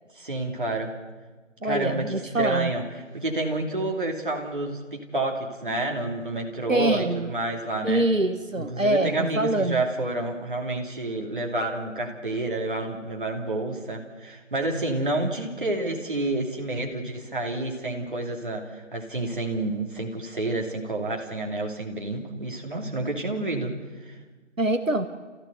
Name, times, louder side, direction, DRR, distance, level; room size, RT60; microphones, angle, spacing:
voice 1, 0.1-0.9 1.6-2.8 3.1-8.1 8.6-23.7 24.0-24.2, right 2 dB, 40° right, 1 dB, 2.9 m, -29 dB
voice 2, 1.6-2.7 6.7-7.3 7.8-9.8 24.6-25.1, right 1 dB, 85° right, 8 dB, 1.6 m, -24 dB
28.5 x 15.5 x 8.1 m, 1.3 s
figure-of-eight pair, 165°, 38 cm